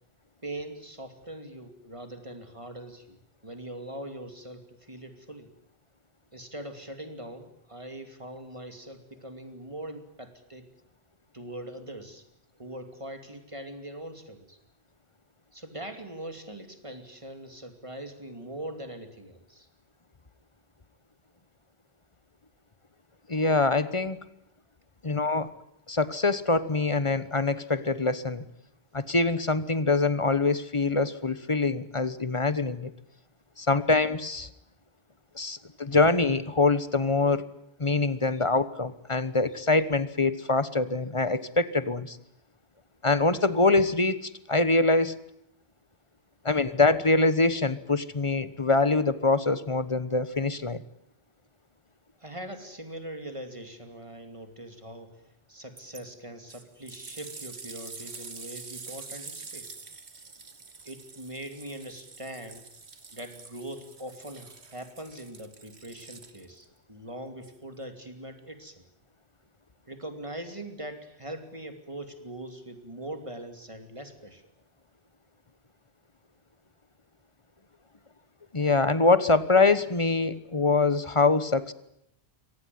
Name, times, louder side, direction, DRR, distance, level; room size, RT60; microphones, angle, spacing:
voice 1, 0.4-5.5 6.3-10.7 11.3-12.2 12.6-14.6 15.5-19.7 52.2-55.2 55.5-59.7 60.8-62.6 63.1-68.8 69.9-74.4, right 1 dB, 30° right, 7 dB, 2.8 m, -41 dB
voice 2, 23.3-24.2 25.0-25.5 25.9-28.4 28.9-32.9 33.6-34.5 35.3-37.5 37.8-42.2 43.0-45.2 46.4-50.8 78.5-81.7, left 3 dB, 30° left, 15 dB, 1.2 m, -24 dB
sound 1, 55.8-56.0 56.5-66.7 67.4-67.5, right 4 dB, 85° right, 2.1 m, -46 dB
25.0 x 18.5 x 9.4 m, 0.78 s
omnidirectional pair, 1.1 m